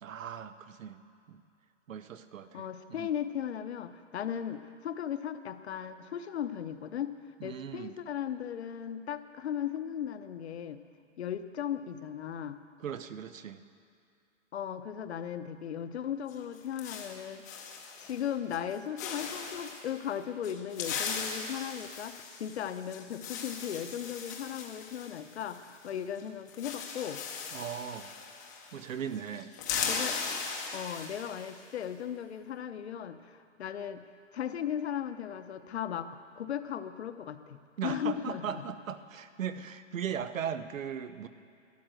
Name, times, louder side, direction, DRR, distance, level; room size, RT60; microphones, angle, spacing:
voice 1, 0.0-1.0 1.3-1.4 1.9-3.1 7.4-7.9 12.8-13.6 27.5-28.1 28.7-29.5 37.8-41.3, right 8 dB, 85° right, 12 dB, 0.9 m, -38 dB
voice 2, 2.5-7.1 7.4-10.8 11.2-12.6 14.5-17.4 18.0-27.2 29.9-30.2 30.7-34.0 34.3-37.6 37.8-38.6, left 9 dB, 55° left, 10 dB, 0.8 m, -37 dB
sound 1, 16.3-18.2 18.5-18.7 19.0-19.8 20.4-25.9 26.2-26.3 26.5-28.9 29.1-31.6, left 6 dB, 15° left, 0.6 m, -38 dB
12.5 x 11.0 x 7.8 m, 2.5 s
hypercardioid pair, 170°, 38 cm